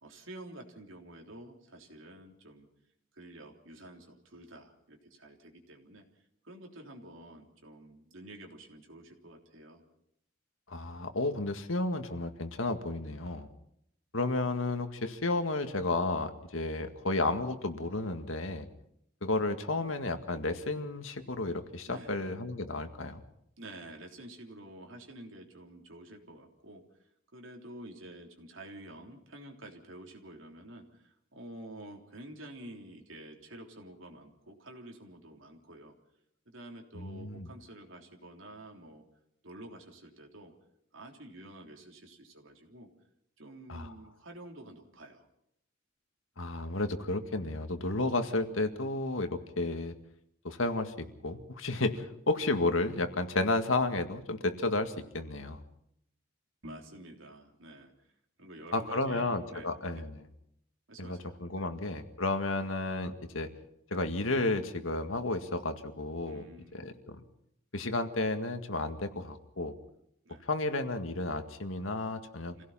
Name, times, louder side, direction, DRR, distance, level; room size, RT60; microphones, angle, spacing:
voice 1, 0.0-2.7 3.1-6.0 6.4-9.8 21.9-22.1 23.6-26.8 27.3-35.9 36.5-39.0 39.4-40.5 40.9-42.9 43.4-45.3 56.6-58.1 58.4-60.1 60.9-61.7 66.3-67.0 70.3-70.5 72.6-72.7, right 1 dB, 75° right, 2 dB, 3.5 m, -49 dB
voice 2, 10.7-13.5 14.1-18.7 19.2-23.2 37.0-37.5 43.7-43.9 46.4-49.9 50.4-55.6 58.7-60.3 61.0-63.5 63.9-66.5 66.7-67.2 67.7-69.8 70.4-72.6, left 2 dB, 85° left, 7 dB, 1.9 m, -32 dB
27.0 x 17.0 x 5.8 m, 0.74 s
head